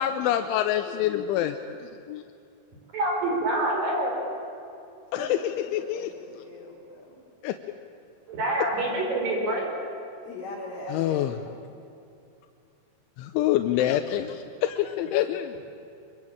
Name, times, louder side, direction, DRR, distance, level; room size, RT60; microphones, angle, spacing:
voice 1, 0.0-1.6 2.1-2.2 5.1-5.4 5.7-6.1 7.4-7.5 10.9-11.3 13.2-15.6, left 12 dB, 90° left, 7 dB, 3.3 m, -26 dB
voice 2, 2.9-4.1 8.3-9.7, right 1 dB, 50° right, 0 dB, 6.3 m, -26 dB
voice 3, 5.2-7.2 8.8-8.9 10.2-11.3, left 2 dB, 50° left, -3 dB, 5.7 m, -40 dB
24.5 x 23.0 x 8.8 m, 2.6 s
omnidirectional pair, 5.3 m